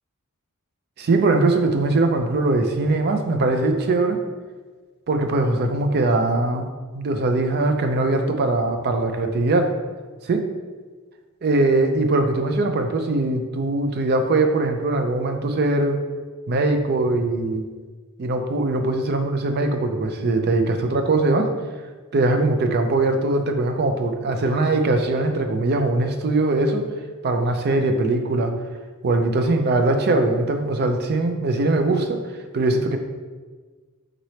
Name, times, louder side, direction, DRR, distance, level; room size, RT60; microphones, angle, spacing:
voice 1, 1.0-4.2 5.1-9.7 10.2-10.4 11.4-16.0 16.5-17.7 18.2-21.5 22.1-26.9 27.2-28.5 29.0-32.2 32.5-33.0, right 2 dB, 45° right, 6 dB, 0.4 m, -21 dB
4.2 x 3.9 x 3.2 m, 1.4 s
head